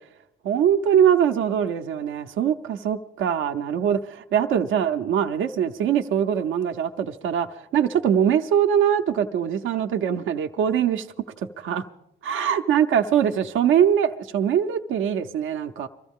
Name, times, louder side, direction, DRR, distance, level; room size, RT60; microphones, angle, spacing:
voice 1, 0.4-11.1 11.4-11.8 12.2-15.9, right 9 dB, 85° right, 0.7 m, -22 dB
23.0 x 14.0 x 3.6 m
cardioid pair, 90°, 20 cm